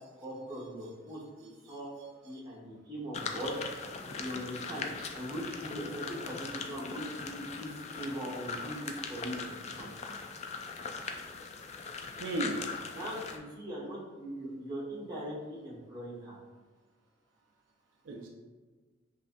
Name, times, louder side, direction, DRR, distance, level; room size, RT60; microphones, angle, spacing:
voice 1, 0.2-1.9 2.2-3.5 4.1-4.8 5.1-7.7 7.9-9.9 12.9-16.4, equal, 25° right, -7 dB, 1.4 m, -40 dB
voice 2, 1.4-2.4 5.0-5.1 12.2-12.6 18.0-18.3, right 2 dB, 80° right, 0 dB, 0.5 m, -38 dB
sound 1, 3.1-13.4, left 5 dB, 35° left, 0.3 m, -40 dB
5.6 x 2.7 x 2.6 m, 1.4 s
head